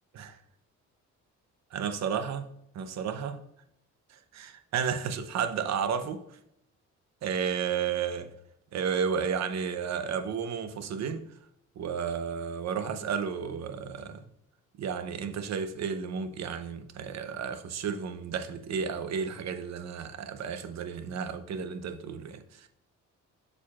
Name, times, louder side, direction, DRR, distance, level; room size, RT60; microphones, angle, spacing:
voice 1, 1.7-2.5 2.7-3.4 4.3-6.2 7.2-8.3 8.7-11.2 11.8-14.2 14.8-22.4, right 7 dB, 60° right, 0.8 m, -32 dB
7.2 x 6.7 x 2.4 m
cardioid pair, 90°, 30 cm